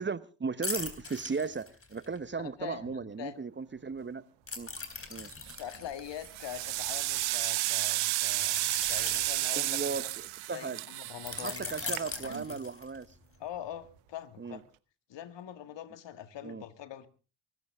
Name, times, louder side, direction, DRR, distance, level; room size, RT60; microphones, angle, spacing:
voice 1, 0.0-4.2 4.6-4.7 5.1-5.3 9.5-10.0 10.5-10.8 11.3-13.1 14.4-14.6 16.4-16.6, right 5 dB, 25° right, 1.0 m, -36 dB
sound 1, 0.6-2.2 4.5-7.2 8.4-10.2 11.3-13.1 13.5-13.7, left 3 dB, 25° left, 3.7 m, -40 dB
voice 2, 2.4-3.4 5.6-8.6 8.9-10.1 10.5-12.6 13.4-14.6 15.1-17.1, left 10 dB, 60° left, 1.8 m, -43 dB
sound 2, 5.3-5.7 6.2-12.4, right 18 dB, 75° right, 1.1 m, -32 dB
23.5 x 13.5 x 3.6 m
supercardioid pair, 65°, 48 cm